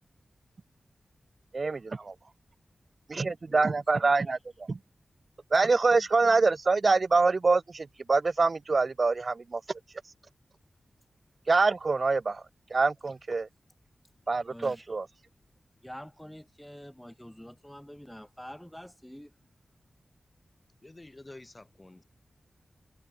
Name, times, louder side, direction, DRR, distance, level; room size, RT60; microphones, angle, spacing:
voice 1, 1.5-2.1 3.1-4.8 5.5-9.6 11.5-12.4 12.7-13.5 14.3-15.0, right 3 dB, 45° right, 0.7 m, -25 dB
voice 2, 3.4-4.2 14.5-14.9 15.8-19.3, equal, 5° left, 7.7 m, -47 dB
voice 3, 20.8-22.0, left 2 dB, 20° left, 5.4 m, -49 dB
wide cardioid pair, 115°, 0 cm